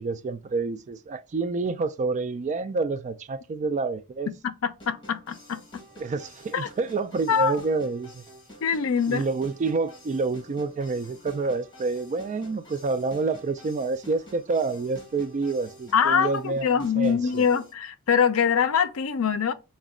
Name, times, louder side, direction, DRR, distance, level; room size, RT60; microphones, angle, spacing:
voice 1, 0.0-4.3 6.0-8.2 9.1-17.5, right 3 dB, 35° right, 0.3 m, -28 dB
voice 2, 4.4-5.6 6.5-6.7 7.3-7.5 8.6-9.2 15.9-19.5, left 7 dB, 70° left, 0.5 m, -24 dB
sound 1, 4.8-17.7, equal, 25° left, 1.7 m, -49 dB
5.0 x 2.2 x 3.6 m
head